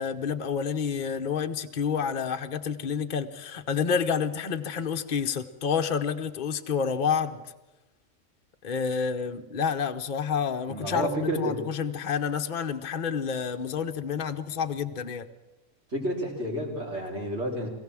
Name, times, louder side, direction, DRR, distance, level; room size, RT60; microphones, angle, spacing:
voice 1, 0.0-7.4 8.6-15.3, left 6 dB, 40° left, 6 dB, 0.9 m, -29 dB
voice 2, 10.7-11.6 15.9-17.7, right 1 dB, 55° right, -1 dB, 3.7 m, -30 dB
22.5 x 15.5 x 7.5 m, 1.0 s
omnidirectional pair, 1.4 m